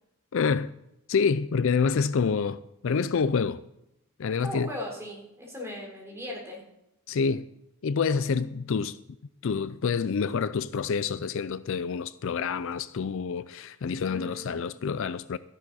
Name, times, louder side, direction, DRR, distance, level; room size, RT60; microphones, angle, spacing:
voice 1, 0.3-0.7 1.1-3.6 4.2-4.7 7.1-7.5 7.8-9.0 9.4-15.4, left 5 dB, 60° left, 0.4 m, -27 dB
voice 2, 4.4-6.6 14.1-14.6, left 1 dB, 15° right, 4.0 m, -38 dB
13.0 x 11.0 x 4.2 m
head